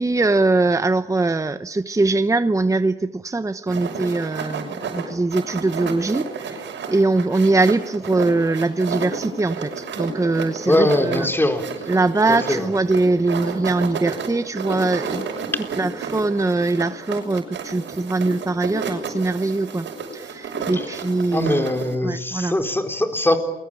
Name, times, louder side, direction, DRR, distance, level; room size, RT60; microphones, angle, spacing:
voice 1, 0.0-11.3 11.9-15.3 15.8-19.9 20.1-21.7 22.0-22.6, right 2 dB, 15° right, 11 dB, 1.0 m, -22 dB
sound 1, 3.7-22.0, right 5 dB, 65° right, 6.5 m, -31 dB
voice 2, 10.7-11.6 12.3-12.7 21.3-23.4, left 1 dB, 10° left, 6 dB, 4.4 m, -21 dB
28.5 x 23.0 x 9.0 m, 0.95 s
cardioid pair, 90°, 20 cm